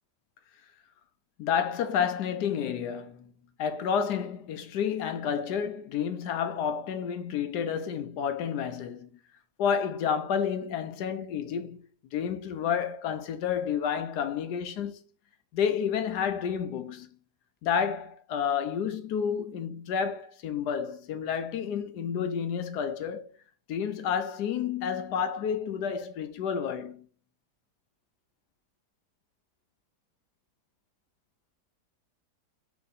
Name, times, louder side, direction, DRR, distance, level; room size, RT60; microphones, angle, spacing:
voice 1, 1.4-3.3 3.6-9.1 9.6-11.9 12.1-15.0 15.5-17.1 17.6-23.3 23.7-27.1, left 7 dB, 80° left, 1.2 m, -30 dB
4.6 x 2.9 x 4.0 m
omnidirectional pair, 1.8 m